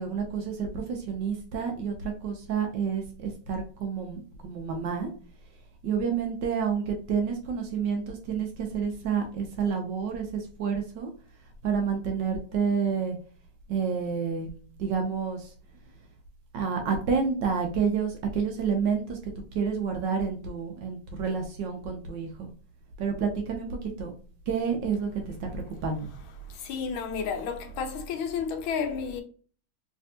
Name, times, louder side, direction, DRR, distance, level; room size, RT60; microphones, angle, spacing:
voice 1, 0.0-5.1 5.8-11.1 11.6-13.2 13.7-14.5 14.8-15.5 16.5-19.2 19.5-22.5 23.0-24.1 24.5-26.1, right 6 dB, 70° right, 1.2 m, -29 dB
voice 2, 26.5-29.2, left 6 dB, 80° left, 1.5 m, -31 dB
3.4 x 3.3 x 2.7 m
omnidirectional pair, 2.3 m